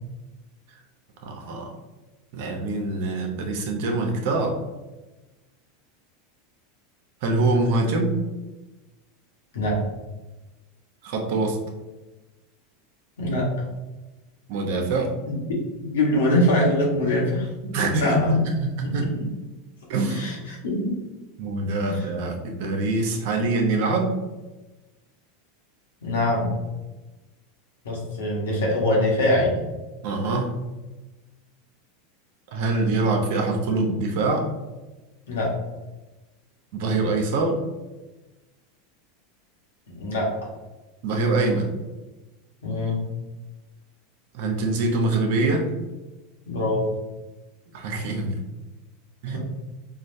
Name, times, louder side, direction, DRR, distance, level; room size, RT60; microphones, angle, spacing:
voice 1, 1.2-1.8 2.3-4.6 7.2-8.2 11.0-11.6 14.5-15.2 17.7-19.1 19.9-20.4 21.4-24.1 30.0-30.6 32.5-34.5 36.7-37.6 41.0-41.7 44.3-45.7 47.7-48.4 49.2-49.4, right 2 dB, 65° right, 2 dB, 0.7 m, -24 dB
voice 2, 13.2-13.5 15.3-15.6 15.9-18.4 18.8-19.1 20.1-21.0 21.9-22.0 26.0-26.6 27.8-29.6 35.3-35.6 39.9-40.3 42.6-43.1 46.5-46.9 49.3-49.4, left 1 dB, 85° left, -4 dB, 1.2 m, -23 dB
4.0 x 2.4 x 2.6 m, 1.1 s
hypercardioid pair, 110°, 0 cm